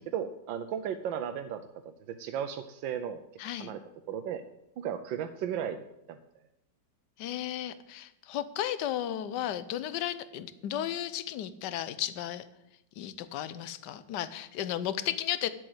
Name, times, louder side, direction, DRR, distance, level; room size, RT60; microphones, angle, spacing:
voice 1, 0.0-3.2 3.6-3.8 4.1-4.4 4.8-6.2, right 8 dB, 85° right, 8 dB, 1.4 m, -35 dB
voice 2, 3.4-3.7 7.2-12.5 13.0-15.5, left 11 dB, 75° left, 14 dB, 1.3 m, -34 dB
10.0 x 7.7 x 8.0 m, 0.86 s
omnidirectional pair, 2.0 m